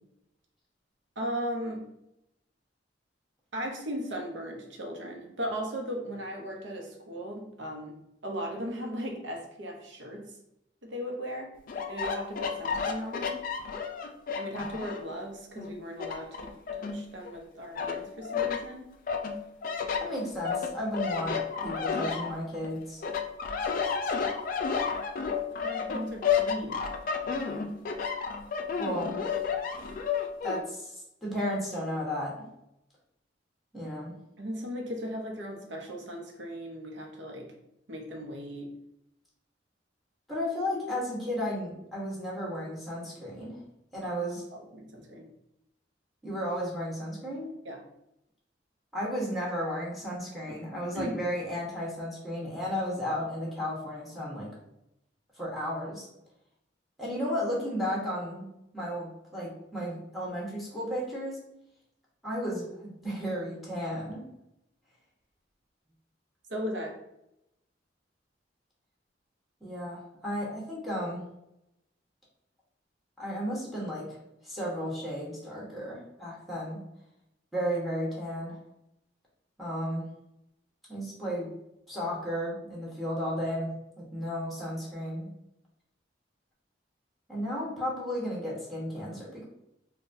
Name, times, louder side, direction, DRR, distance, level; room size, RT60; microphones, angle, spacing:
voice 1, 1.2-1.8 3.5-7.9 8.2-10.3 10.8-11.5 11.9-13.4 14.4-18.9 25.6-26.9 34.4-37.5 37.9-38.7 44.5-45.3 47.6-47.8 50.5-50.6 50.9-51.2 66.5-66.9, equal, 80° right, 1 dB, 0.7 m, -37 dB
sound 1, 11.7-15.1 15.6-17.4 17.8-18.6 19.1-22.7 23.0-30.6, left 6 dB, 50° left, 0.3 m, -31 dB
voice 2, 20.0-23.0 28.8-29.2 30.4-32.3 33.7-34.1 40.3-43.6 43.9-44.4 46.2-47.5 48.9-54.5 55.4-56.1 57.0-58.5 58.7-61.4 62.2-64.2 69.6-71.2 73.2-74.2 74.4-76.8 77.5-78.6 79.6-80.0 80.9-81.5 81.9-85.3 87.3-89.4, equal, ahead, -5 dB, 1.0 m, -34 dB
3.8 x 2.2 x 2.6 m, 0.85 s
head